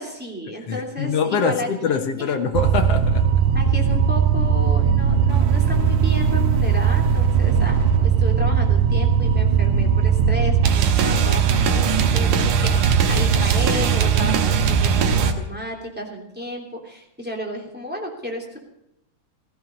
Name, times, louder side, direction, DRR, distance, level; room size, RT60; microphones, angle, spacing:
voice 1, 0.0-1.7 2.2-2.3 3.5-18.6, equal, 5° right, -1 dB, 2.6 m, -32 dB
voice 2, 0.7-3.3 12.6-12.9, left 5 dB, 60° left, 6 dB, 2.0 m, -24 dB
sound 1, 2.5-15.3, right 7 dB, 75° right, 2.5 m, -18 dB
16.0 x 15.0 x 5.3 m, 0.86 s
omnidirectional pair, 3.5 m